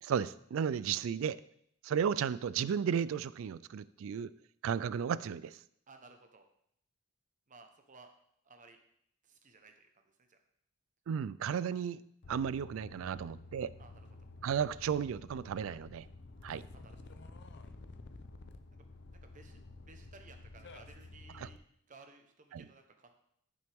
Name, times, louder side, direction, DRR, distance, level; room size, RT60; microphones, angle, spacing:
voice 1, 0.0-1.4 1.8-4.3 4.6-5.5 11.1-12.0 12.3-13.7 14.4-16.1 16.4-16.6 21.4-21.5 22.5-22.6, right 7 dB, 70° right, 18 dB, 0.3 m, -34 dB
voice 2, 5.9-6.5 7.5-8.1 8.4-8.8 9.2-10.4 13.8-14.1 16.7-17.2 18.8-18.9 19.2-21.6 21.9-23.2, right 3 dB, 35° right, 5 dB, 1.0 m, -58 dB
sound 1, 12.2-21.6, left 2 dB, 55° left, 0.6 m, -51 dB
11.5 x 6.2 x 3.5 m, 0.72 s
head